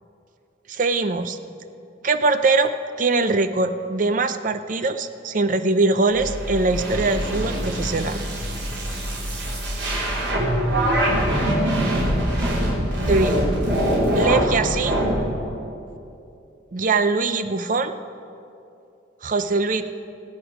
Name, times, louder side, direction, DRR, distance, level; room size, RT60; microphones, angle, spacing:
voice 1, 0.7-1.4 2.0-2.7 3.0-8.2 13.1-13.5 14.2-15.0 16.7-17.9 19.2-19.8, right 3 dB, 45° right, 10 dB, 0.6 m, -22 dB
sound 1, 6.1-15.1, equal, 85° right, 3.7 m, -23 dB
20.5 x 8.5 x 5.0 m, 2.7 s
head